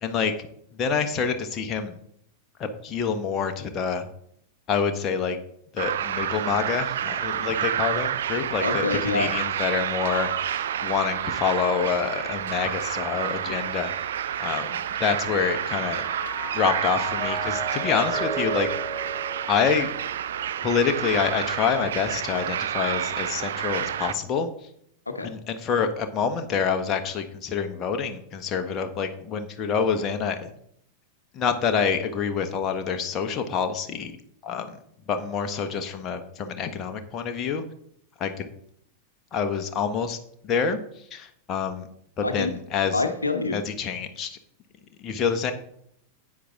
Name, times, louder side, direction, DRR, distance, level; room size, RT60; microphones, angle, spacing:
voice 1, 0.0-0.3 0.7-2.0 2.6-4.1 4.7-5.4 5.7-13.9 14.4-16.0 16.5-18.7 19.5-19.9 20.6-24.7 25.2-30.5 31.3-34.1 34.4-34.8 35.1-37.6 38.2-38.5 39.3-40.2 40.4-41.9 42.2-43.0 43.5-44.4 45.0-45.5, left 6 dB, 30° left, 6 dB, 1.2 m, -27 dB
sound 1, 5.8-24.1, right 10 dB, 60° right, 0.5 m, -29 dB
voice 2, 8.6-9.3 25.1-25.3 42.2-42.5 42.9-43.6, left 3 dB, 80° left, 7 dB, 1.0 m, -26 dB
Mallet percussion, 14.6-20.2, equal, 15° left, 4.3 m, -35 dB
10.0 x 8.6 x 3.7 m, 0.67 s
figure-of-eight pair, 90°, 0 cm